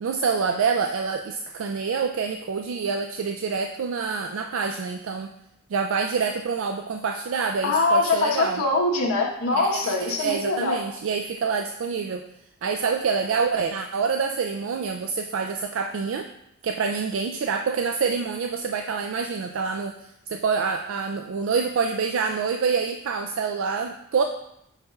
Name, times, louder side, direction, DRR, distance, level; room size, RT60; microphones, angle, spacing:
voice 1, 0.0-5.3 5.7-8.6 9.5-12.2 12.6-16.3 16.6-24.2, right 5 dB, 65° right, 4 dB, 0.3 m, -26 dB
voice 2, 7.6-10.8, left 3 dB, 85° left, 0 dB, 1.1 m, -23 dB
7.9 x 5.7 x 2.3 m, 0.79 s
head